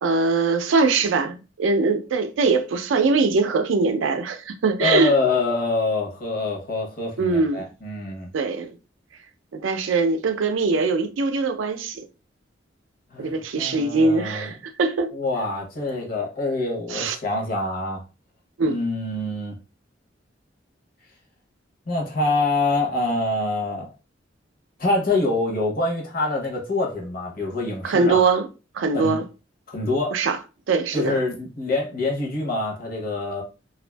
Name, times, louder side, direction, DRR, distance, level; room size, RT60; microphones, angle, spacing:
voice 1, 0.0-5.1 7.2-7.6 8.3-8.7 9.5-12.0 13.2-15.1 16.9-17.2 18.6-18.8 27.8-28.5 28.7-29.3 30.1-30.4 30.7-31.2, right 4 dB, 90° right, 0.4 m, -22 dB
voice 2, 4.8-8.3 13.1-14.5 15.1-18.0 18.6-19.5 21.9-23.9 24.8-28.3 28.9-29.2 29.7-30.2 30.9-33.4, left 2 dB, 50° left, 0.8 m, -25 dB
2.5 x 2.3 x 2.2 m
head